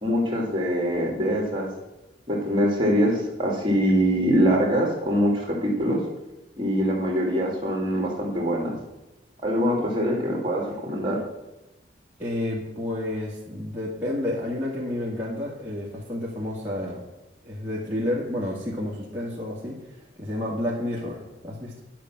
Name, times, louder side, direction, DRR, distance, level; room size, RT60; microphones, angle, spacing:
voice 1, 0.0-1.7 2.3-6.0 6.6-8.7 9.4-11.2, equal, 25° right, -1 dB, 2.4 m, -23 dB
voice 2, 12.2-17.0 17.4-19.8 20.2-21.8, left 1 dB, 10° right, -7 dB, 2.1 m, -30 dB
10.5 x 6.1 x 5.9 m, 1.0 s
head